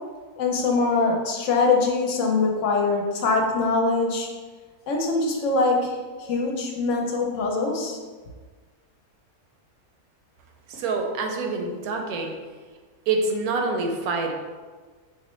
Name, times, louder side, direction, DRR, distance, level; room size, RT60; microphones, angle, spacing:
voice 1, 0.4-4.3 4.9-8.0, left 3 dB, 65° left, 0 dB, 0.9 m, -23 dB
voice 2, 10.7-12.3 13.1-14.3, right 3 dB, 80° right, 3 dB, 1.1 m, -26 dB
5.3 x 2.1 x 3.0 m, 1.4 s
omnidirectional pair, 1.6 m